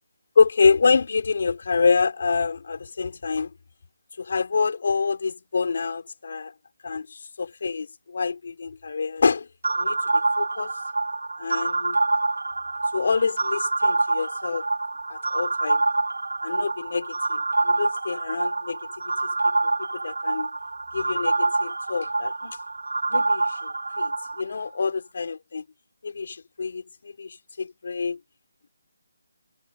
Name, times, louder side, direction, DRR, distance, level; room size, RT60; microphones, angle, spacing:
voice 1, 0.4-3.5 4.2-6.5 6.8-9.5 9.8-10.7 11.4-12.0 12.9-14.6 15.1-15.8 16.4-18.8 19.6-19.7 20.0-20.5 20.9-22.6 23.1-23.7 24.0-25.6 26.0-28.2, left 5 dB, 50° left, 5.8 m, -26 dB
sound 1, 9.6-24.4, right 3 dB, 90° right, 3.9 m, -26 dB
hypercardioid pair, 175°, 0 cm